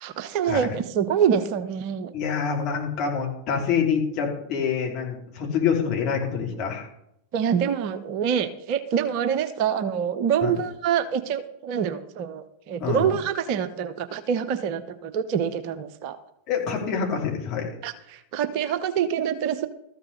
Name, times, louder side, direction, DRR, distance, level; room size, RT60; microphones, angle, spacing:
voice 1, 0.0-2.1 7.3-16.2 17.8-19.7, right 8 dB, 45° right, 11 dB, 0.9 m, -26 dB
voice 2, 2.1-6.9 10.4-10.5 12.8-13.1 16.5-17.7, left 6 dB, 40° left, 0 dB, 3.2 m, -26 dB
13.5 x 6.0 x 6.7 m, 0.78 s
figure-of-eight pair, 90°, 0 cm